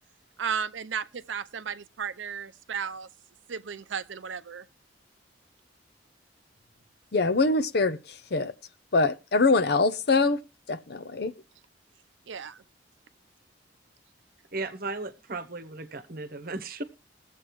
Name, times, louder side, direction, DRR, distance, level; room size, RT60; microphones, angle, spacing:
voice 1, 0.4-3.1 3.5-4.6 12.3-12.6, right 7 dB, 85° right, 0.6 m, -34 dB
voice 2, 7.1-8.0 8.3-8.5 8.9-10.4 10.7-11.3, left 3 dB, 60° left, 0.6 m, -23 dB
voice 3, 14.5-16.8, right 3 dB, 50° right, 1.0 m, -35 dB
21.0 x 7.6 x 3.1 m
head